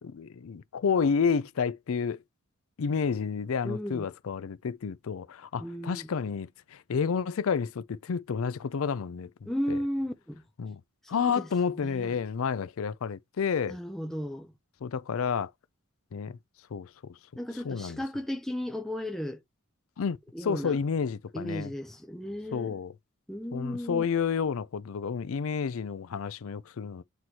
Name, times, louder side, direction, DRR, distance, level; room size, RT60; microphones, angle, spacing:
voice 1, 0.0-2.2 2.8-9.3 9.7-9.8 10.6-10.8 11.1-13.8 14.8-15.5 16.1-16.4 16.7-16.9 17.6-18.0 20.0-21.7 22.5-22.9 23.5-27.0, left 6 dB, 70° left, 0.4 m, -30 dB
voice 2, 3.6-4.1 5.6-6.1 9.5-10.4 11.0-11.5 11.8-12.2 13.7-14.5 17.4-19.4 20.3-20.8 21.3-22.8 23.3-24.0, equal, ahead, 0.6 m, -35 dB
7.7 x 3.1 x 4.2 m
head